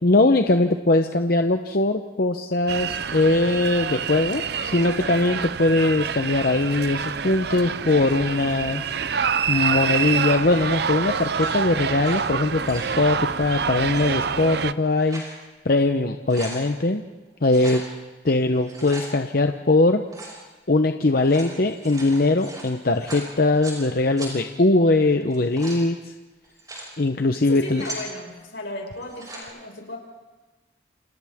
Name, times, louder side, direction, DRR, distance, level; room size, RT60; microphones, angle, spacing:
voice 1, 0.0-8.8 9.5-15.2 15.6-17.0 17.4-17.8 18.2-20.0 20.7-26.0 27.0-27.8, left 2 dB, 55° left, 6 dB, 0.8 m, -21 dB
sound 1, 2.7-14.7, right 6 dB, 60° right, 0.6 m, -27 dB
sound 2, 9.9-10.3 11.3-12.2 12.5-12.9 13.8-14.0 14.7-15.3 15.8-15.9 16.1-16.6 17.5-17.9 18.5-19.1 20.1-20.4 21.1-23.8 24.2-24.3 25.2-25.8 26.4-26.9 27.5-28.1 29.0-29.4, right 2 dB, 20° right, 6.0 m, -39 dB
voice 2, 27.5-30.0, left 2 dB, 85° left, 0 dB, 5.5 m, -35 dB
29.0 x 27.5 x 3.6 m, 1.2 s
head